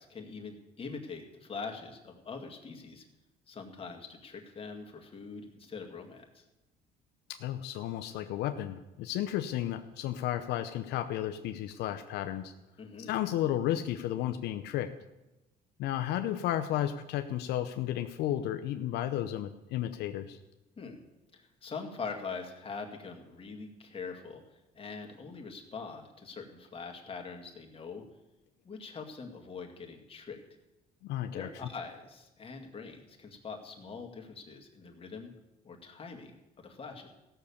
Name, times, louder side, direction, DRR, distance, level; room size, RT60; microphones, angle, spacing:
voice 1, 0.0-3.1 3.5-6.4 12.8-13.2 20.8-21.0 21.3-28.0 28.6-30.4 31.3-35.3 35.6-37.1, left 4 dB, 35° left, 3 dB, 2.1 m, -43 dB
voice 2, 7.3-12.5 13.0-14.9 15.8-20.4 31.0-31.5, left 12 dB, 80° left, 7 dB, 0.7 m, -33 dB
15.5 x 6.7 x 7.1 m, 1.0 s
cardioid pair, 110°, 17 cm